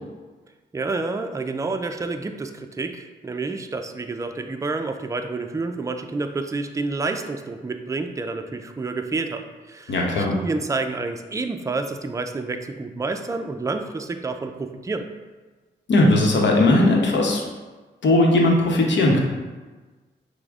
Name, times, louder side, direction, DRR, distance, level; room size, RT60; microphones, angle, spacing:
voice 1, 0.7-15.1, right 3 dB, 15° right, 6 dB, 0.4 m, -29 dB
voice 2, 9.9-10.3 15.9-17.4 18.0-19.2, left 2 dB, 65° left, 0 dB, 0.9 m, -18 dB
5.9 x 2.1 x 3.6 m, 1.3 s
supercardioid pair, 55°, 20 cm